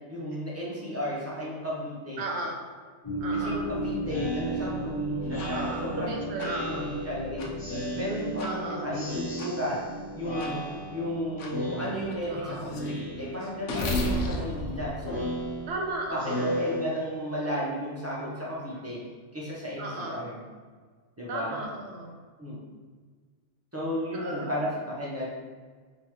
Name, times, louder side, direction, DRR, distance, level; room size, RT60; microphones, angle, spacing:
voice 1, 0.1-2.2 3.3-6.2 6.6-9.9 10.1-15.2 16.1-19.0 19.3-20.4 21.2-21.6 22.4-22.6 23.7-25.3, equal, 15° right, -6 dB, 0.5 m, -34 dB
voice 2, 2.2-2.6 3.2-3.6 5.5-6.9 8.4-8.8 12.3-12.6 15.7-16.5 19.8-20.2 21.3-22.1 24.1-24.6, right 2 dB, 70° right, 0 dB, 0.9 m, -35 dB
sound 1, 3.0-13.6, right 1 dB, 20° left, 1.1 m, -36 dB
Speech synthesizer, 4.1-7.2 7.6-8.6 8.9-9.9 10.2-11.1 11.5-12.4 12.7-13.5 13.8-17.4, equal, 65° left, 1.6 m, -35 dB
sound 2, 5.4-5.5 6.4-6.5 7.4-7.5 8.4-8.5 9.4-9.5 10.4-10.5 11.4-11.5 12.1-16.0, left 2 dB, 85° left, 0.9 m, -34 dB
3.6 x 2.9 x 3.0 m, 1.5 s
omnidirectional pair, 1.2 m